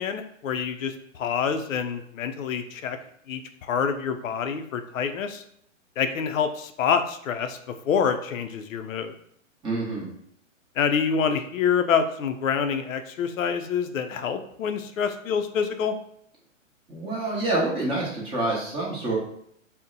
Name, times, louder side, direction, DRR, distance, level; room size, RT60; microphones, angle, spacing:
voice 1, 0.0-3.0 3.3-5.4 6.0-7.6 7.9-9.1 10.8-15.9, left 6 dB, 80° left, 8 dB, 0.5 m, -26 dB
voice 2, 9.6-10.1 16.9-19.2, right 2 dB, 15° right, -5 dB, 0.7 m, -27 dB
2.7 x 2.1 x 3.7 m, 0.70 s
hypercardioid pair, 125°, 39 cm